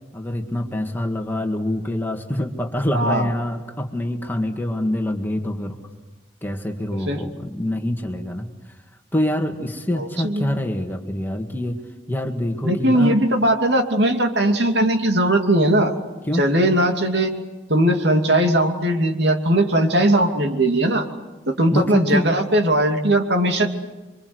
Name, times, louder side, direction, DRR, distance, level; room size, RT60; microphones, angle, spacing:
voice 1, 0.1-5.8 6.4-8.5 9.1-11.8 12.1-13.2 16.3-16.5 21.7-22.3, left 1 dB, 10° left, 3 dB, 2.0 m, -25 dB
voice 2, 2.9-3.3 7.1-7.2 9.9-10.6 12.6-15.9 16.3-17.3 17.7-21.1 21.5-23.7, right 1 dB, 70° right, 4 dB, 2.7 m, -19 dB
28.5 x 24.5 x 8.1 m, 1.2 s
head